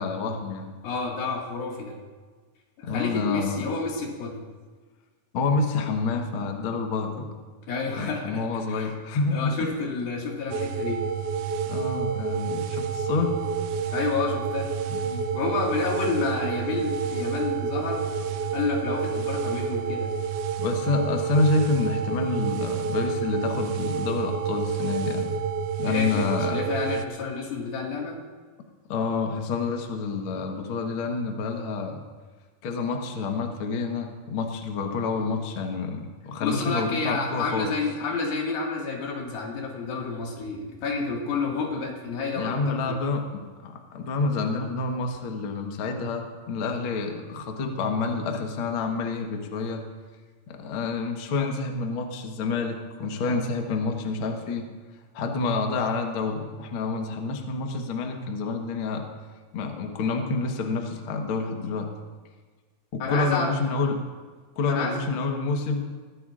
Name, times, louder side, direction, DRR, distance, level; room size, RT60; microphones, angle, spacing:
voice 1, 0.0-0.7 2.8-3.7 5.3-7.4 8.0-9.7 11.7-13.4 14.9-15.3 20.6-25.3 25.8-26.6 28.9-32.0 32.6-37.7 42.4-49.9 50.5-54.7 55.1-59.0 59.5-61.9 62.9-64.0 64.6-65.8, left 3 dB, 65° left, 3 dB, 1.3 m, -28 dB
voice 2, 0.8-2.0 2.8-4.4 7.7-8.9 9.3-11.0 13.9-14.8 15.3-20.1 25.8-28.2 36.4-43.0 63.0-63.5 64.7-65.0, left 4 dB, 80° left, -1 dB, 3.9 m, -30 dB
sound 1, 10.0-20.4, right 5 dB, 35° right, 4.0 m, -53 dB
sound 2, 10.5-27.1, right 6 dB, 90° right, 1.6 m, -29 dB
22.0 x 15.0 x 2.5 m, 1.4 s
omnidirectional pair, 4.2 m